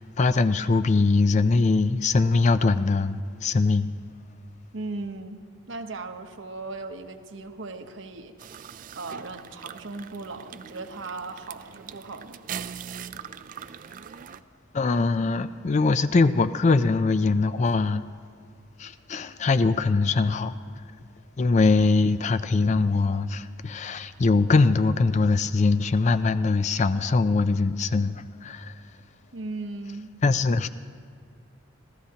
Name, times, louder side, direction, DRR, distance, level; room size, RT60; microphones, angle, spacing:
voice 1, 0.2-3.9 14.7-18.0 18.8-20.6 21.4-28.7 30.2-30.7, left 3 dB, 35° left, 0.4 m, -22 dB
voice 2, 4.7-5.4 5.7-8.7 8.9-12.4 29.3-30.2, right 3 dB, 70° right, 1.0 m, -37 dB
sound 1, 8.4-14.4, right 8 dB, 45° right, 0.3 m, -41 dB
29.5 x 13.5 x 2.9 m
head